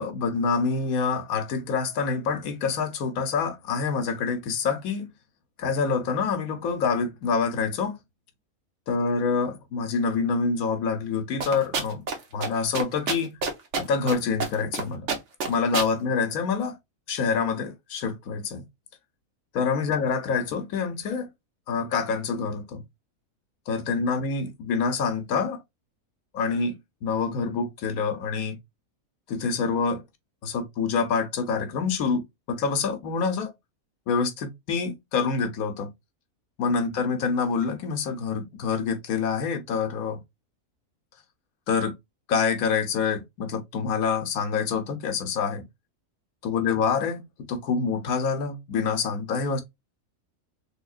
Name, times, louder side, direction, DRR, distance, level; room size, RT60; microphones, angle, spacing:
voice 1, 0.0-5.1 5.6-8.0 8.9-12.1 12.3-13.4 13.8-15.1 15.5-16.8 17.1-18.6 19.5-21.3 21.7-22.8 23.7-25.6 26.3-28.6 29.3-30.0 30.4-33.5 34.1-35.9 36.6-40.2 41.7-41.9 42.3-45.6 46.4-47.2 47.5-49.6, left 5 dB, 75° left, 1.2 m, -26 dB
sound 1, 11.4-12.2 12.4-12.5 12.7-14.1 14.4-14.8 15.1-15.9, right 4 dB, 55° right, 1.1 m, -27 dB
3.5 x 3.4 x 2.4 m
omnidirectional pair, 1.5 m